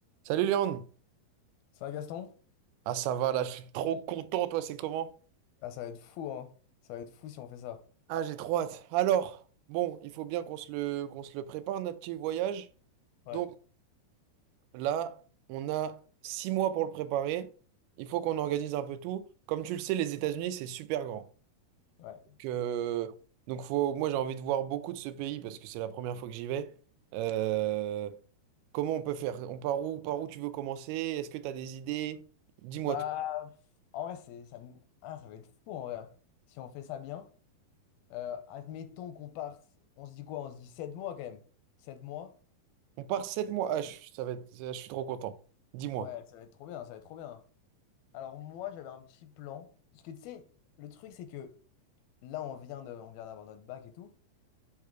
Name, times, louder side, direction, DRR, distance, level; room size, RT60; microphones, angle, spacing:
voice 1, 0.3-0.9 2.9-5.1 8.1-9.4 9.7-12.7 13.3-13.5 14.7-15.2 15.5-17.5 18.0-21.3 22.4-23.2 23.5-26.8 27.1-28.2 28.7-32.2 32.6-33.0 43.0-45.4 45.7-46.1, right 11 dB, 90° right, 2.6 m, -32 dB
voice 2, 1.7-2.3 5.6-6.5 6.9-7.8 13.3-13.4 22.0-22.4 32.8-33.6 33.9-36.1 36.5-37.3 38.1-39.6 40.0-41.4 41.8-42.3 46.0-47.4 48.1-50.5 50.8-51.6 52.2-54.1, left 11 dB, 85° left, 2.5 m, -41 dB
7.4 x 3.6 x 4.4 m
omnidirectional pair, 4.4 m